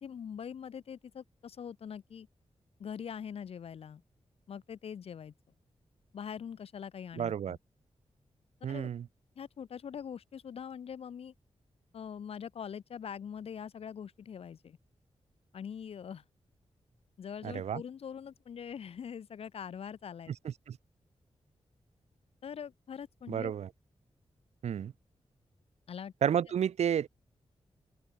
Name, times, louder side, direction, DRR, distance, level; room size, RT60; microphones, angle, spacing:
voice 1, 0.0-2.3 2.8-4.0 4.5-5.3 6.1-7.6 8.7-8.9 9.4-11.3 11.9-14.8 15.5-16.2 17.2-20.3 22.4-23.5 25.9-26.1, left 7 dB, 65° left, 0.5 m, -43 dB
voice 2, 7.2-7.6 8.6-9.1 17.4-17.8 20.4-20.8 23.3-23.7 24.6-24.9 26.2-27.1, right 9 dB, 80° right, 0.5 m, -31 dB
wide cardioid pair, 125°, 11 cm